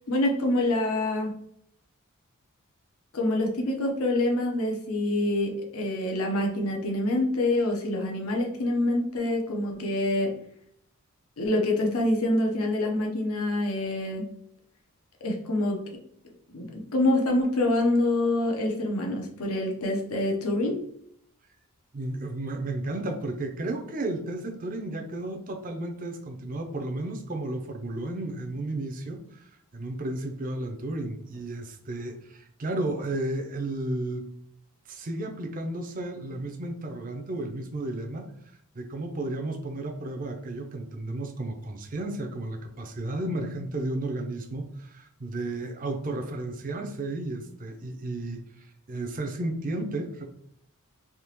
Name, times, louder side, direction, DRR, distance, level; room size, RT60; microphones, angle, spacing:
voice 1, 0.1-1.3 3.1-10.3 11.4-14.2 15.2-15.8 16.5-16.7 16.9-20.8, left 1 dB, 75° left, 1 dB, 0.8 m, -26 dB
voice 2, 21.9-34.3 34.9-38.3 38.7-50.2, right 2 dB, 40° right, 4 dB, 0.5 m, -33 dB
3.6 x 2.9 x 2.9 m, 0.70 s
head